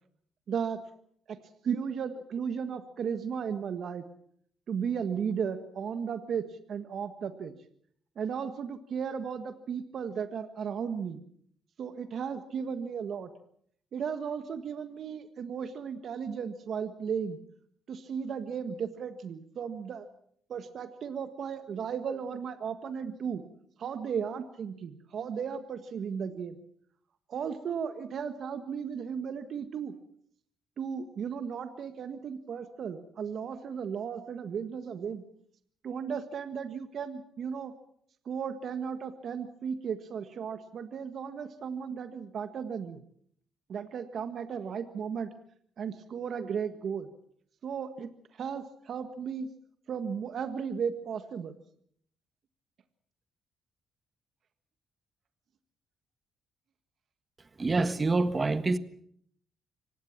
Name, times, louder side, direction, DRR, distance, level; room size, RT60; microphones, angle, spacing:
voice 1, 0.5-0.8 1.3-1.4 1.6-4.0 4.7-7.5 8.1-11.2 11.8-13.3 13.9-17.4 17.9-20.1 20.5-23.4 23.8-26.6 27.3-29.9 30.8-35.2 35.8-37.7 38.2-43.0 43.7-45.3 45.8-47.1 47.6-49.5 49.9-51.6, right 7 dB, 60° right, 1.6 m, -35 dB
voice 2, 57.6-58.8, right 3 dB, 30° right, 1.5 m, -26 dB
25.0 x 18.5 x 7.3 m
cardioid pair, 90°, 0 cm